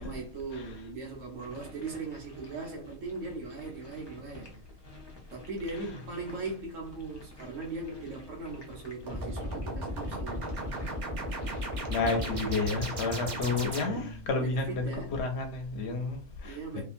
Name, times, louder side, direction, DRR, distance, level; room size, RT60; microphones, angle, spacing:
voice 1, 0.0-4.6 5.3-10.5 14.3-15.2 16.4-16.8, right 3 dB, 80° right, 1.3 m, -39 dB
sound 1, 1.4-13.7, left 2 dB, 25° left, 0.6 m, -51 dB
sound 2, 9.1-14.3, right 1 dB, 45° right, 0.6 m, -35 dB
voice 2, 11.9-16.8, left 3 dB, 65° left, 0.8 m, -31 dB
2.8 x 2.5 x 2.5 m
omnidirectional pair, 1.3 m